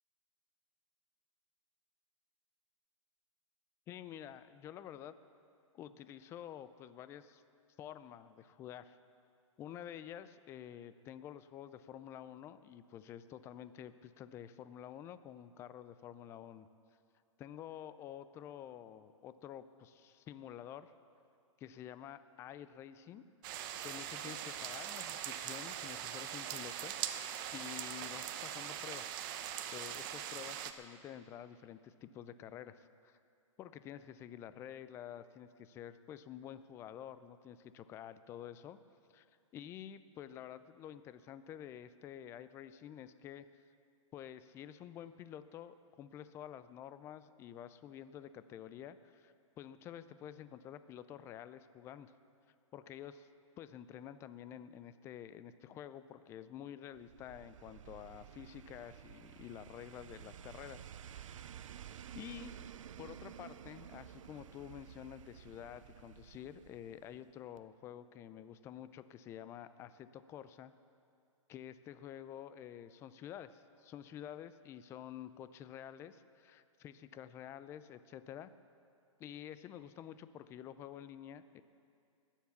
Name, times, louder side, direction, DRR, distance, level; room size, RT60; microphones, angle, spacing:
voice 1, 3.9-5.1 5.7-7.4 7.8-9.0 9.6-16.7 17.4-20.9 21.6-23.2 23.8-29.2 29.7-33.2 33.6-38.8 39.1-39.3 39.5-43.6 44.1-52.1 52.7-53.3 53.6-61.4 62.1-62.6 63.0-70.7 71.5-78.5 79.2-81.6, left 10 dB, 15° left, 13 dB, 0.4 m, -49 dB
sound 1, 23.4-30.7, right 10 dB, 40° right, 0.8 m, -42 dB
sound 2, 56.9-67.3 67.6-67.7, right 9 dB, 70° right, 0.6 m, -52 dB
19.5 x 7.3 x 7.0 m, 2.4 s
hypercardioid pair, 140°, 17 cm